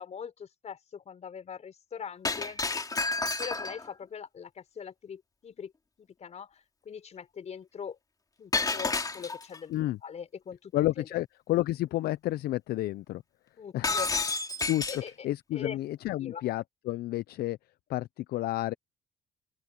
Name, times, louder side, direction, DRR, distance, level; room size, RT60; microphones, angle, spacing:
voice 1, 0.0-2.6 3.4-5.7 6.0-8.0 8.4-9.7 10.0-10.7 11.0-11.1 13.6-14.1 14.9-15.1 15.5-15.8 16.2-16.5, left 7 dB, 40° left, 5.4 m, -41 dB
Shatter, 2.2-3.9 8.5-9.6 13.8-15.1, left 3 dB, 20° left, 3.3 m, -30 dB
voice 2, 10.7-13.2 13.7-14.0 14.7-14.8 15.2-17.6 17.9-18.7, left 15 dB, 65° left, 0.5 m, -30 dB
open air
cardioid pair, 110°, 17 cm